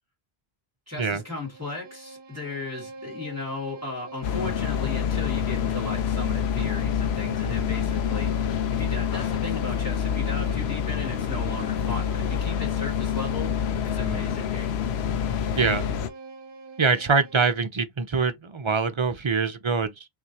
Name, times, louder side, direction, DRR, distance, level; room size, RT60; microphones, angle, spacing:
voice 1, 0.9-14.9, left 3 dB, 15° right, 2.1 m, -36 dB
Bowed string instrument, 1.1-17.7, right 3 dB, 65° right, 0.8 m, -43 dB
sound 1, 4.2-16.1, left 8 dB, 85° left, 0.8 m, -27 dB
voice 2, 15.5-15.9 16.8-20.1, right 4 dB, 40° right, 0.4 m, -24 dB
5.7 x 2.6 x 2.8 m
omnidirectional pair, 1.0 m